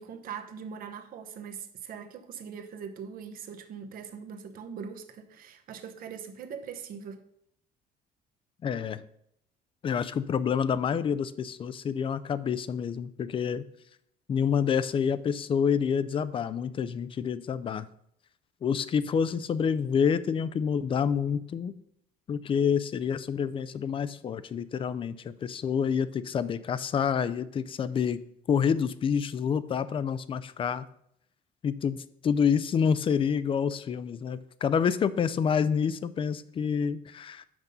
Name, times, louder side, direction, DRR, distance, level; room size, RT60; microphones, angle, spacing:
voice 1, 0.0-7.2, right 7 dB, 55° right, 1.0 m, -41 dB
voice 2, 8.6-9.0 9.8-13.6 14.3-17.9 18.6-21.7 22.3-28.2 28.5-30.8 31.6-32.0 32.2-37.5, left 7 dB, 30° left, 0.4 m, -28 dB
6.0 x 5.3 x 6.7 m
cardioid pair, 130°, 17 cm